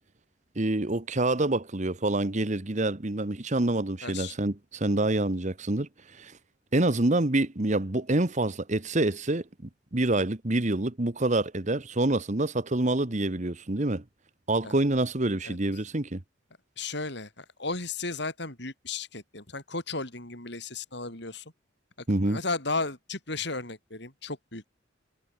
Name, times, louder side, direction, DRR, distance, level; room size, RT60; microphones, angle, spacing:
voice 1, 0.5-5.9 6.2-6.3 6.7-9.4 9.9-14.0 14.5-16.2 22.1-22.4, right 2 dB, 40° right, 1.3 m, -26 dB
voice 2, 4.0-4.4 14.6-14.8 15.4-15.6 16.8-21.4 22.2-24.7, left 3 dB, 60° left, 7.3 m, -34 dB
head